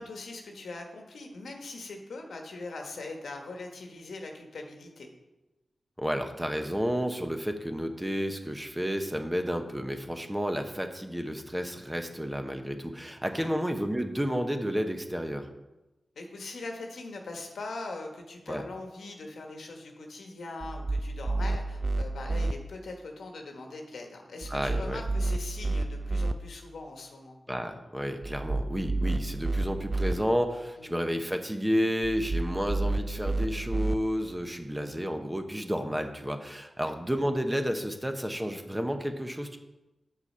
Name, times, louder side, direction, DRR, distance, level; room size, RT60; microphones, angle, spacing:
voice 1, 0.0-5.1 13.3-13.5 16.1-27.4 30.8-31.0 36.8-36.9, left 2 dB, 85° left, 2 dB, 1.2 m, -41 dB
voice 2, 6.0-15.5 18.5-18.6 24.5-25.0 27.5-39.6, equal, 10° right, 6 dB, 0.9 m, -31 dB
sound 1, 20.6-22.5 24.4-26.3 28.2-30.1 32.0-34.0, right 2 dB, 35° right, 0.4 m, -30 dB
6.8 x 6.0 x 5.5 m, 1.0 s
cardioid pair, 55°, 0 cm